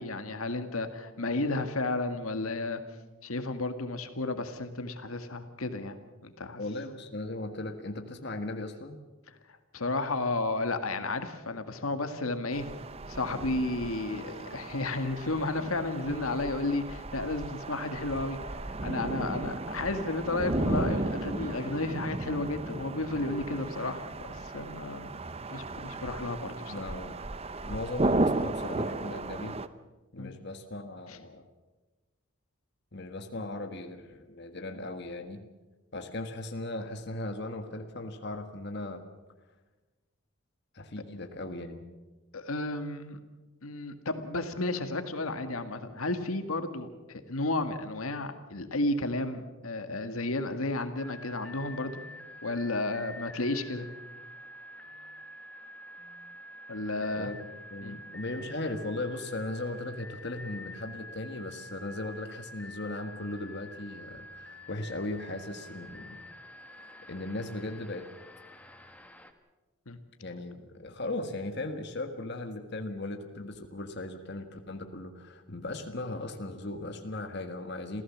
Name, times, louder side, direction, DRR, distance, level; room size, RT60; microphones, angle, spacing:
voice 1, 0.0-2.8 3.2-6.0 6.2-6.6 9.7-12.7 13.1-18.4 18.6-24.0 24.3-25.2 25.5-26.9 30.2-30.3 31.1-31.2 42.3-43.2 43.6-52.0 52.4-53.9 56.7-57.3 57.8-58.0 69.9-70.0, left 2 dB, 85° left, 8 dB, 1.9 m, -32 dB
voice 2, 6.6-9.0 26.7-27.2 27.6-29.6 30.1-31.5 32.9-35.4 35.9-39.0 40.7-41.8 57.1-57.4 57.7-66.2 67.1-68.1 70.2-78.0, left 2 dB, 50° left, 6 dB, 1.6 m, -37 dB
sound 1, 12.5-29.7, right 2 dB, 30° right, 0.7 m, -34 dB
sound 2, 51.0-69.3, left 1 dB, 5° left, 1.4 m, -47 dB
28.0 x 15.5 x 7.4 m, 1.2 s
head